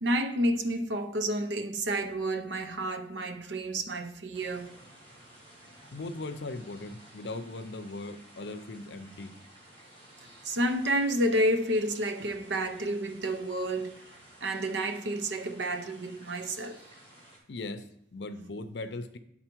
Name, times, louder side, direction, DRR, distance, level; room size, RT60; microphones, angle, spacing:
voice 1, 0.0-4.7 10.4-14.0 14.4-16.8, right 1 dB, 75° right, 0.7 m, -30 dB
sound 1, 4.3-17.4, right 1 dB, 30° right, 2.2 m, -54 dB
voice 2, 5.9-9.4 17.5-19.2, left 2 dB, 65° left, 0.6 m, -39 dB
10.5 x 4.1 x 4.5 m
head